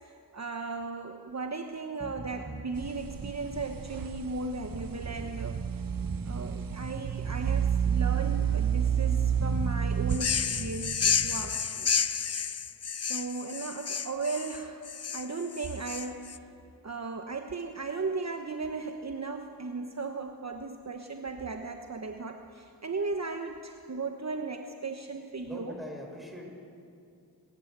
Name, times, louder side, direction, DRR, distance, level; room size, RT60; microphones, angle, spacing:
voice 1, 0.0-5.8 6.2-11.9 12.9-16.3 16.8-25.7, right 3 dB, 45° right, 5 dB, 1.2 m, -36 dB
sound 1, 2.0-2.7 3.1-3.9 4.7-5.7 6.0-7.5 7.9-8.8 9.5-11.6, right 3 dB, 20° right, 1.3 m, -42 dB
sound 2, 2.7-10.2, right 8 dB, 60° right, 0.8 m, -30 dB
sound 3, 10.1-16.4, left 6 dB, 40° left, 0.7 m, -31 dB
voice 2, 25.4-26.5, left 1 dB, ahead, 0 dB, 6.7 m, -41 dB
27.5 x 14.0 x 8.2 m, 2.5 s
cardioid pair, 55°, 38 cm